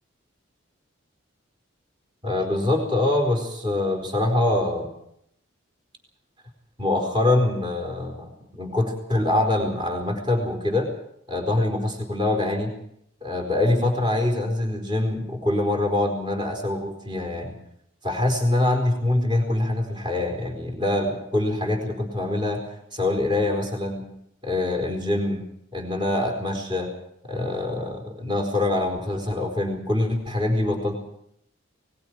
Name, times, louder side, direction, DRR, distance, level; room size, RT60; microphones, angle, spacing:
voice 1, 2.2-4.9 6.8-10.9 11.3-12.7 13.2-17.6 18.0-24.0 24.4-25.4 25.7-26.9 27.3-31.0, left 2 dB, 25° right, 3 dB, 4.4 m, -24 dB
28.5 x 21.0 x 4.8 m, 0.72 s
head